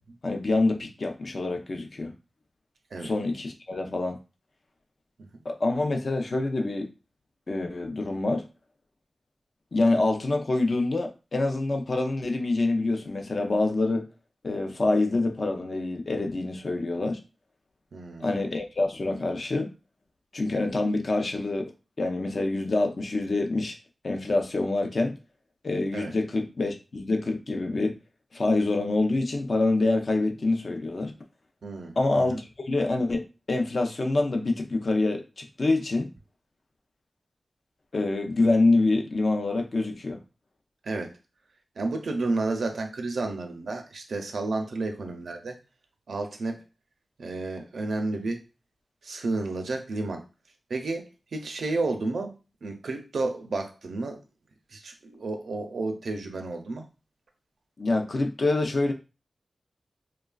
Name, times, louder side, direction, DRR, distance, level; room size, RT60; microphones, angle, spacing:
voice 1, 0.2-2.1 3.0-4.2 5.4-6.9 7.5-8.5 9.7-14.1 14.4-17.2 18.2-19.7 20.3-21.7 22.0-23.8 24.0-25.2 25.6-27.9 28.3-31.1 32.0-36.1 37.9-40.2 57.8-58.9, left 2 dB, 55° left, 0.5 m, -26 dB
voice 2, 17.9-18.3 25.9-26.1 31.6-32.4 40.8-41.1 41.8-45.6 46.1-46.6 47.2-48.4 49.0-50.2 50.7-54.2 54.7-56.9, right 3 dB, 90° right, 0.5 m, -31 dB
3.0 x 2.3 x 2.3 m
wide cardioid pair, 95°, 0 cm